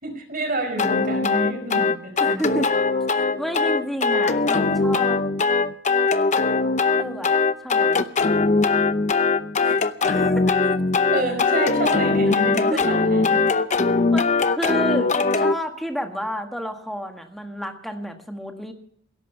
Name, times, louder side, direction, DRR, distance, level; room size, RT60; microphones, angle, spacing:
voice 1, 0.0-2.4 9.6-9.8 11.1-13.4, right 1 dB, 45° right, 5 dB, 4.9 m, -28 dB
sound 1, 0.8-15.6, left 4 dB, 40° left, 0.7 m, -21 dB
voice 2, 2.2-2.7 3.4-5.2 7.0-7.3 7.6-8.3 10.0-10.5 12.7-12.8 14.1-18.7, equal, ahead, 4 dB, 1.7 m, -30 dB
17.0 x 13.5 x 5.7 m, 0.68 s
head